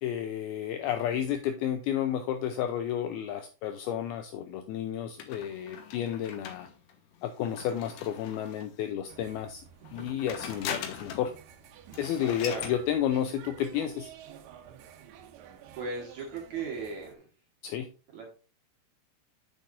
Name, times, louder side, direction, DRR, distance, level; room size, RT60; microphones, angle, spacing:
voice 1, 0.0-6.7 7.2-9.6 9.9-11.3 12.0-14.1 17.6-17.9, left 10 dB, 90° left, 8 dB, 2.2 m, -31 dB
sound 1, 5.2-8.8 9.8-11.3 11.6-11.7 11.9-12.8, left 8 dB, 70° left, 2.2 m, -41 dB
sound 2, 9.1-17.2, right 9 dB, 75° right, 2.7 m, -51 dB
voice 2, 15.7-17.3 18.1-18.3, right 4 dB, 60° right, 0 dB, 2.1 m, -37 dB
8.0 x 7.0 x 2.5 m, 0.34 s
omnidirectional pair, 5.1 m